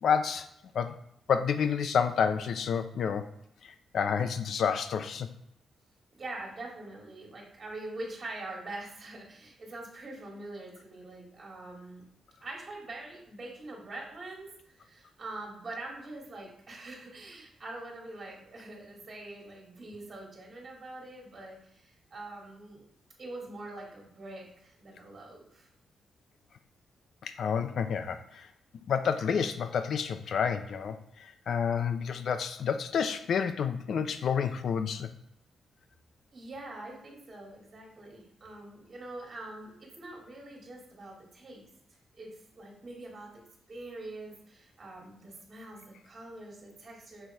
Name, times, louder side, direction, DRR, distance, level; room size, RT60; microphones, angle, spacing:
voice 1, 0.0-0.5 0.7-0.9 1.3-3.3 3.6-5.3 27.2-28.5 28.9-35.1, left 7 dB, 55° left, 9 dB, 0.5 m, -29 dB
voice 2, 6.1-12.1 12.4-22.9 23.2-25.7 36.3-41.7 42.1-43.3 43.7-47.3, right 2 dB, 30° right, -2 dB, 2.4 m, -44 dB
6.7 x 4.0 x 4.5 m, 0.76 s
wide cardioid pair, 160°, 0 cm